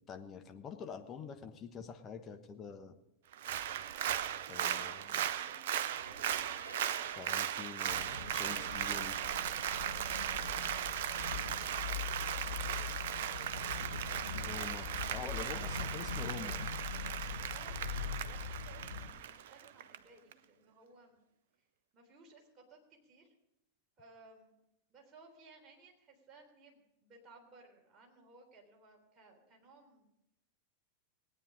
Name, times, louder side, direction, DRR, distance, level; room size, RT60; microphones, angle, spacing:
voice 1, 0.0-2.9 4.5-5.3 7.2-9.2 14.3-16.7, left 6 dB, 25° left, 6 dB, 1.2 m, -46 dB
Applause, 3.3-20.0 20.3-20.4, right 10 dB, 55° right, 0.5 m, -37 dB
sound 1, 3.4-4.4 4.8-17.2, right 2 dB, 75° right, 1.5 m, -57 dB
voice 2, 4.6-5.7 6.0-7.4 12.7-13.7 15.4-16.1 17.5-21.2 21.9-23.3 24.0-24.6 24.9-30.1, right 2 dB, 25° right, -1 dB, 3.6 m, -60 dB
sound 2, 7.9-19.1, left 7 dB, 80° left, 1.2 m, -43 dB
19.0 x 9.0 x 5.0 m, 0.87 s
figure-of-eight pair, 90°, 0 cm